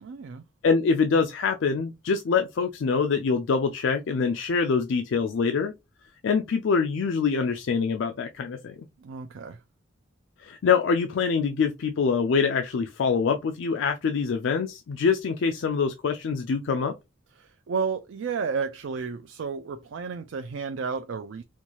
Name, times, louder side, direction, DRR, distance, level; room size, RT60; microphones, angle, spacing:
voice 1, 0.0-0.4 9.0-9.6 17.4-21.4, right 5 dB, 80° right, 0.4 m, -32 dB
voice 2, 0.6-5.7 6.2-8.8 10.4-16.9, left 5 dB, 75° left, 0.4 m, -25 dB
4.4 x 2.3 x 2.8 m
head